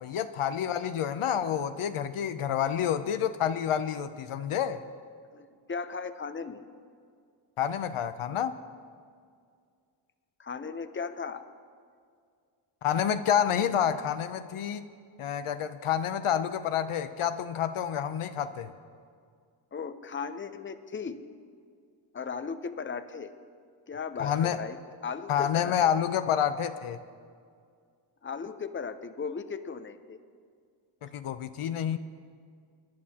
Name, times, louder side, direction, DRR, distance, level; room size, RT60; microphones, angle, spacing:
voice 1, 0.0-4.8 7.6-8.6 12.8-14.8 15.2-18.7 24.2-24.6 25.3-27.0 31.0-32.0, left 9 dB, 85° left, 10 dB, 0.7 m, -28 dB
voice 2, 5.3-6.6 10.4-11.4 19.7-21.2 22.1-23.3 23.9-24.8 25.0-25.9 28.2-30.2, left 5 dB, 25° left, 10 dB, 0.7 m, -37 dB
25.5 x 10.5 x 2.8 m, 2.2 s
cardioid pair, 60°, 49 cm